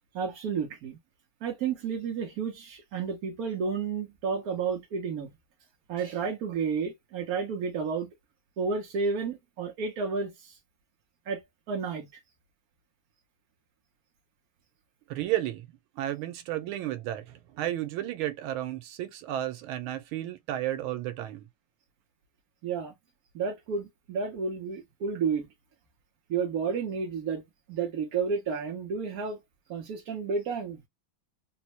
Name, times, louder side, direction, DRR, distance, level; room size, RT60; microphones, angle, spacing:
voice 1, 0.1-1.0 1.4-5.3 5.9-8.1 8.6-10.6 11.3-11.4 11.7-12.2 22.6-22.9 23.3-25.5 26.3-27.4 27.7-29.4 29.7-30.8, right 5 dB, 65° right, 1.0 m, -31 dB
voice 2, 15.1-15.7 16.0-21.5, right 13 dB, 90° right, 1.5 m, -32 dB
4.1 x 2.1 x 2.8 m
omnidirectional pair, 2.2 m